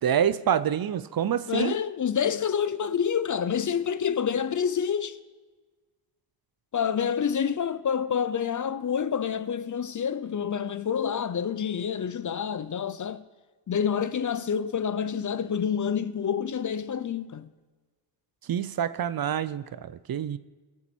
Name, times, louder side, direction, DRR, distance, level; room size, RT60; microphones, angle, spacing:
voice 1, 0.0-1.7 18.5-20.4, right 9 dB, 50° right, 0.5 m, -27 dB
voice 2, 1.5-5.2 6.7-13.2 13.7-17.5, left 7 dB, 45° left, 0.5 m, -28 dB
21.5 x 7.2 x 4.4 m
wide cardioid pair, 120°, 46 cm